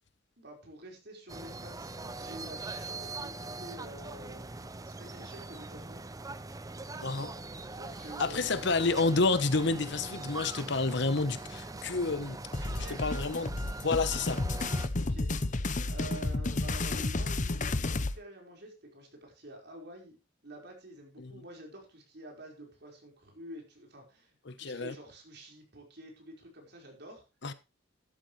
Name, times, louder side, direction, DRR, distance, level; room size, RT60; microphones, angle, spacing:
voice 1, 0.4-6.0 7.7-8.5 12.6-13.1 15.0-20.2 20.4-27.2, right 1 dB, 60° right, 4.9 m, -49 dB
sound 1, 1.3-14.9, right 2 dB, 20° right, 0.6 m, -42 dB
voice 2, 7.0-7.3 8.2-12.4 13.0-13.5 13.8-14.4 21.2-21.4 24.5-24.9 27.4-27.5, left 3 dB, 65° left, 1.1 m, -29 dB
sound 2, 12.5-18.1, left 2 dB, 40° left, 0.8 m, -32 dB
12.5 x 12.0 x 3.2 m
head